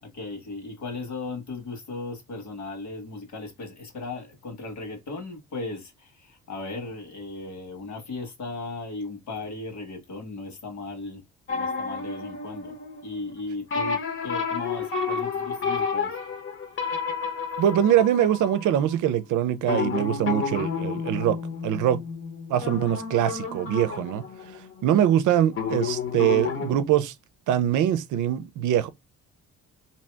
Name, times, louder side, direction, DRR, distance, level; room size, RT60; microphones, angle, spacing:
voice 1, 0.0-11.2 11.5-12.8 13.0-16.2, left 3 dB, 70° left, 1.5 m, -36 dB
sound 1, 11.5-13.3 13.7-18.9 19.6-25.1 25.5-26.7, left 5 dB, 45° left, 0.8 m, -31 dB
voice 2, 17.6-21.4 21.6-22.0 22.5-24.2 24.8-27.1 27.5-28.9, right 10 dB, 80° right, 0.5 m, -23 dB
2.8 x 2.8 x 3.3 m
cardioid pair, 90°, 30 cm